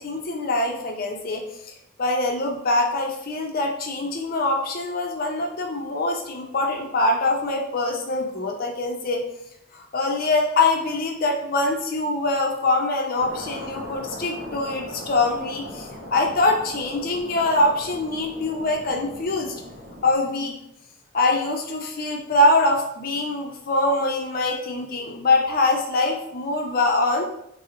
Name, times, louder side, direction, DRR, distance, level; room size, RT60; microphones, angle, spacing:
voice 1, 0.0-1.4 2.0-9.2 9.7-19.5 20.0-20.5 21.1-27.3, left 2 dB, 45° left, 2 dB, 0.4 m, -23 dB
sound 1, 13.2-20.2, equal, 50° right, 0.5 m, -39 dB
3.7 x 2.0 x 2.8 m, 0.77 s
head